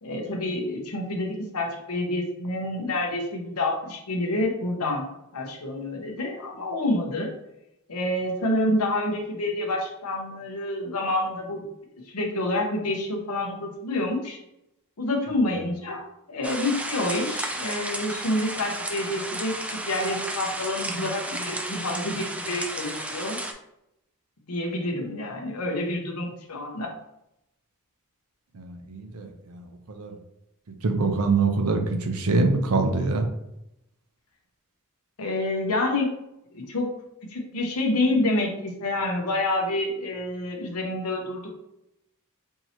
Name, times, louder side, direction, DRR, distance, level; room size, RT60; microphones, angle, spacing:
voice 1, 0.0-5.1 5.3-7.3 7.9-11.6 12.1-14.4 15.0-23.4 24.5-26.9 35.2-36.2 36.5-36.9 37.3-41.5, left 1 dB, 85° left, 1 dB, 1.0 m, -28 dB
sound 1, 16.4-23.5, right 1 dB, 5° right, 0.3 m, -33 dB
voice 2, 28.5-30.2 30.7-33.3, right 3 dB, 70° right, 5 dB, 0.6 m, -25 dB
4.6 x 2.9 x 2.8 m, 0.83 s
head